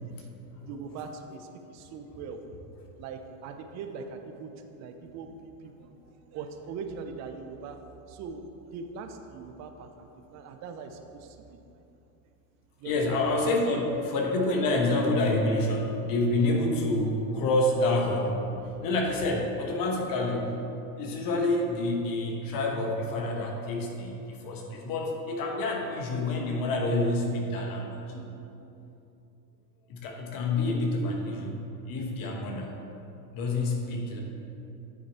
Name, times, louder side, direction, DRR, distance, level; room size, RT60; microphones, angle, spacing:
voice 1, 0.7-2.4 3.0-6.0 6.3-7.8 8.1-8.4 8.7-11.6 12.8-13.2 13.8-14.0 14.7-14.8, right 5 dB, 35° right, 6 dB, 0.6 m, -41 dB
voice 2, 12.8-20.6 21.0-28.3 29.9-31.6 31.9-32.8 33.3-34.2, left 2 dB, 45° left, 1 dB, 1.1 m, -28 dB
9.5 x 4.5 x 4.2 m, 2.8 s
supercardioid pair, 125°, 49 cm